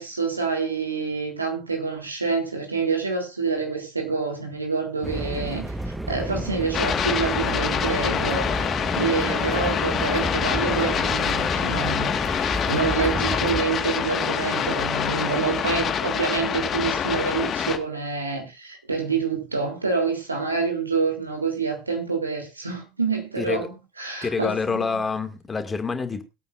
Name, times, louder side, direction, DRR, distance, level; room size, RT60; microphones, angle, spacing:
voice 1, 0.0-8.5 8.9-12.1 12.7-25.0, right 4 dB, 85° right, 3.3 m, -27 dB
sound 1, 5.0-13.6, right 1 dB, 10° right, 1.2 m, -32 dB
sound 2, 6.7-17.8, left 8 dB, 35° left, 1.7 m, -25 dB
voice 2, 23.4-23.7 24.2-26.2, left 4 dB, 20° left, 2.1 m, -27 dB
22.0 x 8.7 x 2.5 m
figure-of-eight pair, 75°, 0 cm